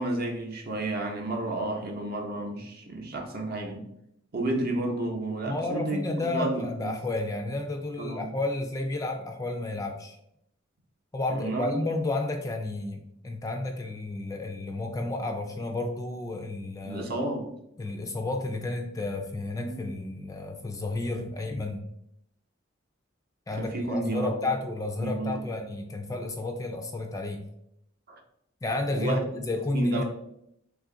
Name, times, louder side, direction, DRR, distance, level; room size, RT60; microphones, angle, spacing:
voice 1, 0.0-3.8 4.3-7.0 8.0-8.3 11.3-11.8 16.8-17.5 19.5-19.9 23.6-24.3 25.0-25.4 28.1-28.2 28.9-29.4 29.7-30.0, right 2 dB, 50° right, 1 dB, 0.7 m, -31 dB
voice 2, 5.4-10.2 11.1-17.1 17.8-21.8 23.5-27.4 28.6-30.0, left 2 dB, 15° left, 4 dB, 0.3 m, -31 dB
3.4 x 2.4 x 3.7 m, 0.76 s
head